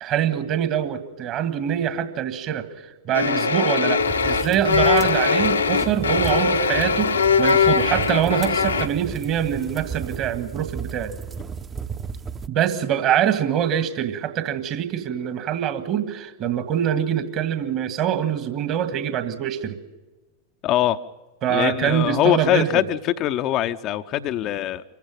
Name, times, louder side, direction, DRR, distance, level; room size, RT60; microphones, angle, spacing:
voice 1, 0.0-2.7 3.1-11.1 12.5-19.8 21.4-22.8, right 9 dB, 35° right, 11 dB, 1.8 m, -24 dB
sound 1, 3.1-8.9, left 5 dB, 75° left, 1.0 m, -21 dB
sound 2, 4.0-12.5, right 6 dB, 20° right, 0.9 m, -34 dB
voice 2, 20.6-21.0 21.5-24.8, left 12 dB, 35° left, 9 dB, 0.7 m, -22 dB
25.5 x 15.0 x 9.1 m, 1.1 s
figure-of-eight pair, 90°, 0 cm